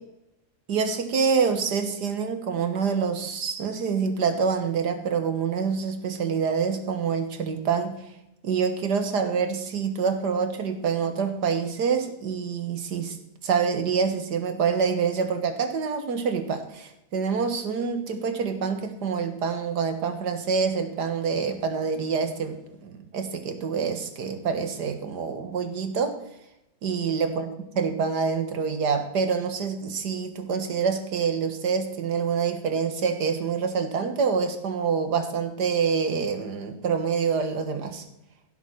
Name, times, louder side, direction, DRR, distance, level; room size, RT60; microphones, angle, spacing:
voice 1, 0.7-8.0 8.4-13.2 13.4-26.1 26.8-27.5 27.8-38.0, right 6 dB, 80° right, 8 dB, 2.1 m, -26 dB
16.0 x 7.4 x 6.1 m, 0.84 s
omnidirectional pair, 1.7 m